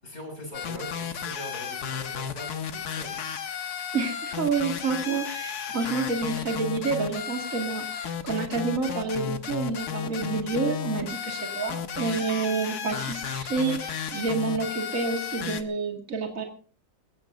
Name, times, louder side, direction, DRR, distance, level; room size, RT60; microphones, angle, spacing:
voice 1, 0.0-3.2, left 1 dB, 35° left, 3 dB, 6.7 m, -41 dB
sound 1, 0.5-15.6, left 7 dB, 65° left, 1.6 m, -33 dB
voice 2, 3.9-16.4, right 4 dB, 50° right, 2 dB, 2.6 m, -29 dB
21.5 x 17.0 x 2.6 m, 0.38 s
omnidirectional pair, 1.9 m